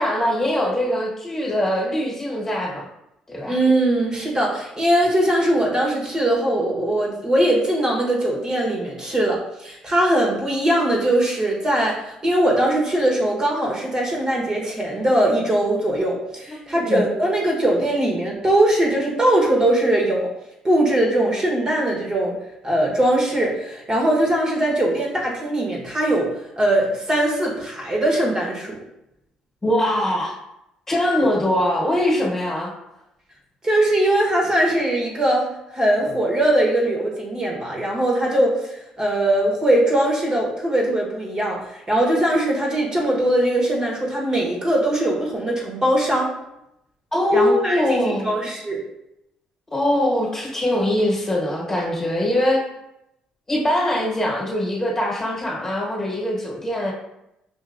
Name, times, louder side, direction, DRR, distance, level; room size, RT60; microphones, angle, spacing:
voice 1, 0.0-2.9 3.3-3.6 16.6-17.0 29.6-30.4 30.9-32.7 42.7-42.9 47.1-48.3 49.7-52.6 53.5-56.9, left 1 dB, 20° left, -3 dB, 1.4 m, -22 dB
voice 2, 3.5-20.3 20.6-22.3 22.6-26.3 26.6-28.8 33.6-46.3 47.3-48.8, right 1 dB, 30° right, -3 dB, 1.2 m, -21 dB
5.6 x 2.7 x 2.5 m, 0.85 s
cardioid pair, 85°, 2 cm